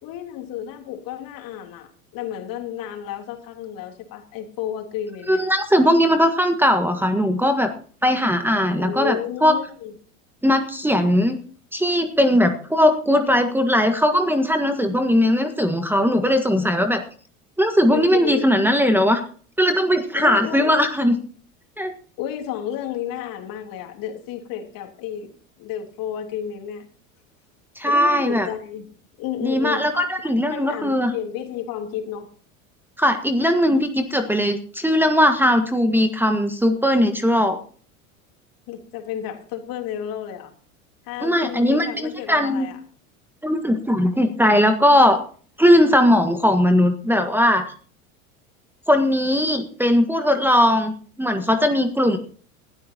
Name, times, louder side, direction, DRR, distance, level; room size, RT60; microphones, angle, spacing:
voice 1, 0.0-5.4 8.7-9.9 17.9-18.5 20.1-20.9 22.2-26.9 27.8-28.9 29.2-29.9 30.2-32.3 38.7-40.5 41.0-42.8, left 10 dB, 50° left, 3 dB, 3.3 m, -32 dB
voice 2, 5.3-7.7 8.0-9.5 10.4-11.4 11.7-17.0 17.6-19.2 19.6-21.1 21.8-21.9 27.8-28.5 29.4-31.1 33.0-37.6 41.2-42.7 43.4-45.2 45.6-47.7 48.9-50.9 51.2-52.2, equal, 5° right, 7 dB, 1.6 m, -19 dB
20.0 x 13.0 x 2.9 m, 0.44 s
hypercardioid pair, 85°, 42 cm